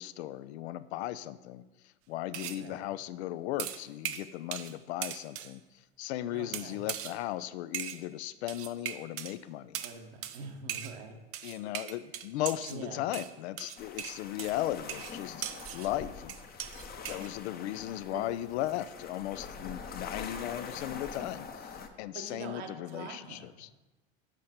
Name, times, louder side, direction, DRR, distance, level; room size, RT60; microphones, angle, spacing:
voice 1, 0.0-1.6 2.1-5.6 6.0-9.8 11.4-15.4 15.7-16.4 17.1-23.7, left 14 dB, 75° left, 15 dB, 0.5 m, -36 dB
sound 1, 2.3-2.6 3.6-4.8 5.0-5.5 6.5-7.2 7.7-8.0 8.5-9.3 9.7-10.0 10.2-10.4 10.7-11.0 11.3-12.8 13.1-15.9 16.3-17.3, right 11 dB, 45° right, 0.6 m, -39 dB
voice 2, 2.5-2.9 6.3-6.9 9.8-11.2 12.7-13.1 18.1-18.2 22.1-23.6, right 4 dB, 70° right, 4 dB, 1.1 m, -45 dB
sound 2, 13.8-21.9, left 5 dB, 30° left, 0.8 m, -44 dB
7.6 x 5.2 x 4.2 m, 1.1 s
hypercardioid pair, 80°, 33 cm